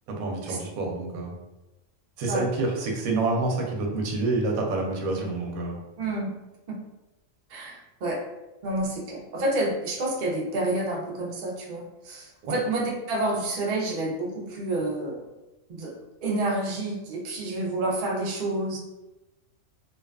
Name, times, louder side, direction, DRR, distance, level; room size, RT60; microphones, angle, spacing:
voice 1, 0.1-1.3 2.2-5.8 12.4-12.5, right 3 dB, 90° right, 0 dB, 1.0 m, -28 dB
voice 2, 6.0-6.3 7.5-8.2 8.6-15.2 15.7-18.8, right 2 dB, 60° right, -2 dB, 0.5 m, -29 dB
2.7 x 2.3 x 2.2 m, 1.0 s
omnidirectional pair, 1.4 m